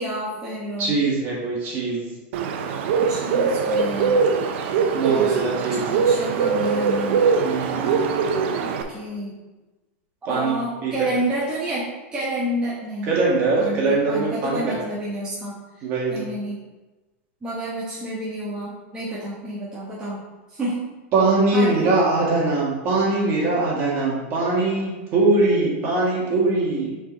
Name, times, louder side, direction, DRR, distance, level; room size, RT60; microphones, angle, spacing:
voice 1, 0.0-1.0 3.1-4.3 5.1-5.4 5.7-7.3 8.6-9.4 10.3-16.6 17.4-20.2 20.5-20.9 21.5-22.0, right 1 dB, 10° right, -9 dB, 1.3 m, -30 dB
voice 2, 0.8-2.1 4.9-5.8 7.4-8.0 10.3-10.9 13.1-14.8 15.8-16.3 21.1-26.9, right 3 dB, 35° right, -5 dB, 2.1 m, -22 dB
Bird, 2.3-8.8, right 5 dB, 60° right, 0.7 m, -22 dB
6.1 x 4.5 x 4.0 m, 1.1 s
supercardioid pair, 155°, 7 cm